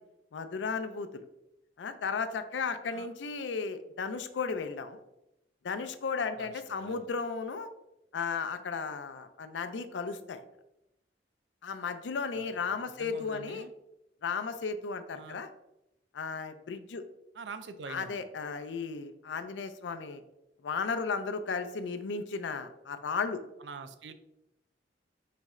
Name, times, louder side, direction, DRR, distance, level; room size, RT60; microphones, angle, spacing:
voice 1, 0.3-1.2 1.8-5.0 5.6-7.7 8.1-10.4 11.6-13.7 14.2-15.5 16.1-17.0 17.9-20.2 20.6-23.4, left 5 dB, 85° left, 10 dB, 0.4 m, -35 dB
voice 2, 6.4-7.1 12.3-13.7 15.1-15.4 17.3-18.2 23.6-24.1, right 5 dB, 70° right, 10 dB, 0.4 m, -46 dB
4.2 x 3.1 x 3.6 m, 0.86 s
head